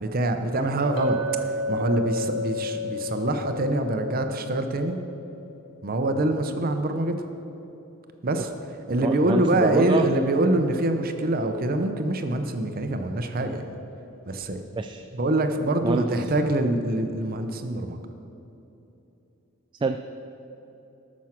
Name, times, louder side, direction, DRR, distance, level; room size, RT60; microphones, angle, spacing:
voice 1, 0.0-1.2 1.7-5.0 5.8-7.2 8.2-8.5 8.9-13.7 14.3-14.6 15.1-18.0, right 2 dB, 45° right, 7 dB, 0.7 m, -25 dB
Chink clink, 1.0-5.1, left 2 dB, 60° left, 2.1 m, -31 dB
voice 2, 9.0-10.1 14.8-15.0 15.8-16.2 19.8-20.0, right 3 dB, 20° right, 7 dB, 0.3 m, -26 dB
13.5 x 6.2 x 5.9 m, 3.0 s
head